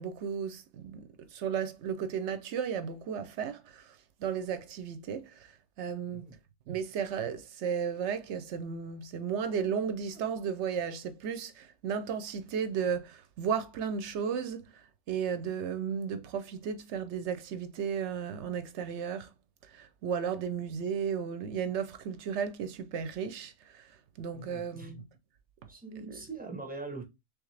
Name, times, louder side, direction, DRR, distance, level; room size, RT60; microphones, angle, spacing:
voice 1, 0.0-6.4 6.7-19.3 19.6-25.0 26.1-26.2, right 7 dB, 60° right, 0.8 m, -34 dB
voice 2, 24.3-24.9 25.7-27.0, right 3 dB, 10° right, 0.5 m, -42 dB
3.5 x 3.3 x 3.2 m
omnidirectional pair, 1.5 m